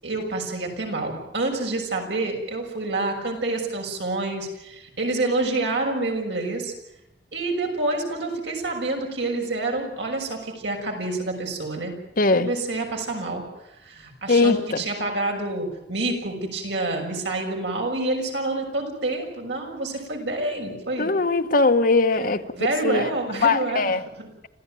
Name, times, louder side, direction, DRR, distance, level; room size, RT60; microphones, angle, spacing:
voice 1, 0.0-6.7 7.3-11.9 12.4-13.4 13.8-21.1 22.1-22.2 22.5-23.9 24.2-24.3, right 2 dB, 80° right, 6.5 m, -28 dB
voice 2, 12.2-12.5 14.3-14.8 21.0-22.4 22.8-23.1 23.4-24.0, left 3 dB, 55° left, 1.3 m, -20 dB
26.5 x 15.5 x 9.2 m
head